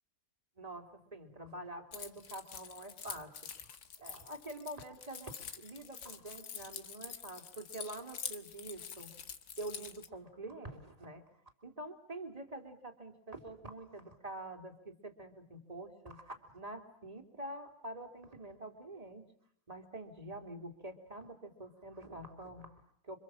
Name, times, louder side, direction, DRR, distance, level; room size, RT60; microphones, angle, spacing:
voice 1, 0.6-3.3 4.0-9.1 9.6-11.2 11.6-19.3 19.7-23.2, right 1 dB, 25° right, 5 dB, 2.8 m, -46 dB
Keys jangling, 1.9-10.1, left 7 dB, 85° left, 1.9 m, -46 dB
27.5 x 25.5 x 7.5 m, 0.69 s
omnidirectional pair, 1.6 m